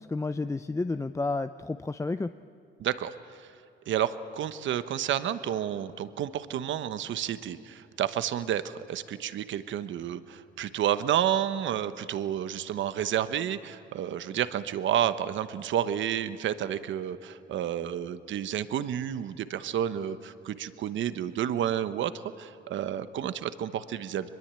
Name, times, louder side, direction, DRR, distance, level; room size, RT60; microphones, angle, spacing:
voice 1, 0.0-2.3, left 3 dB, 15° left, 10 dB, 0.5 m, -31 dB
voice 2, 2.8-3.1 3.9-22.1 22.4-24.3, right 10 dB, 70° right, 12 dB, 1.1 m, -30 dB
23.0 x 21.5 x 9.0 m, 2.7 s
cardioid pair, 90°, 20 cm